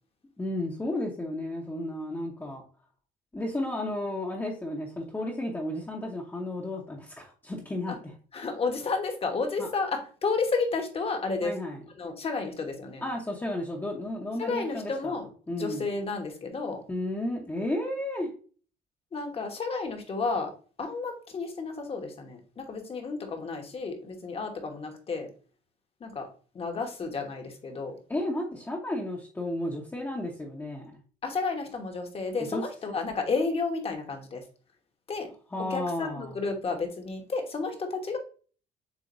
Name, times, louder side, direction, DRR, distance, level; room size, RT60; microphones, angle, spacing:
voice 1, 0.4-2.6 3.3-8.1 9.6-9.7 11.4-11.8 13.0-15.8 16.9-18.3 28.1-31.0 32.5-32.6 35.5-36.4, left 1 dB, 10° left, -2 dB, 0.9 m, -33 dB
voice 2, 8.3-11.6 12.0-13.0 14.4-15.3 15.6-16.8 19.1-20.5 20.8-25.3 26.0-26.3 26.5-28.0 31.2-34.4 35.1-35.3 35.7-38.2, left 4 dB, 35° left, 4 dB, 1.2 m, -31 dB
7.1 x 2.5 x 2.6 m, 0.40 s
cardioid pair, 110°, 17 cm